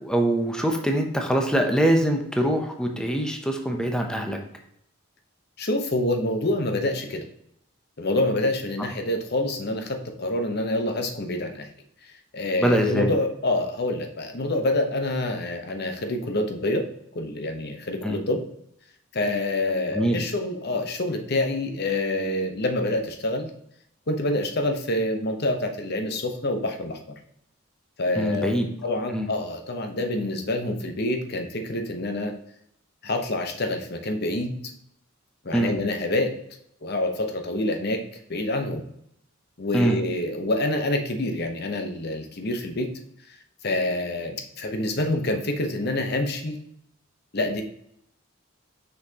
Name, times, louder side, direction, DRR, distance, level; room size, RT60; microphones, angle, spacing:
voice 1, 0.0-4.4 12.6-13.1 18.0-18.2 19.9-20.2 28.2-28.7 29.1-29.3 35.5-35.7 39.7-40.0, right 1 dB, 5° left, 3 dB, 0.7 m, -23 dB
voice 2, 5.6-7.3 8.0-11.7 12.3-16.8 17.1-18.4 19.1-23.5 24.1-27.0 28.0-28.5 28.8-32.3 33.0-34.6 35.4-36.3 36.8-38.0 38.3-38.8 39.6-42.9 43.6-46.6 47.3-47.6, left 1 dB, 50° left, 5 dB, 0.9 m, -27 dB
6.3 x 5.7 x 2.9 m, 0.72 s
head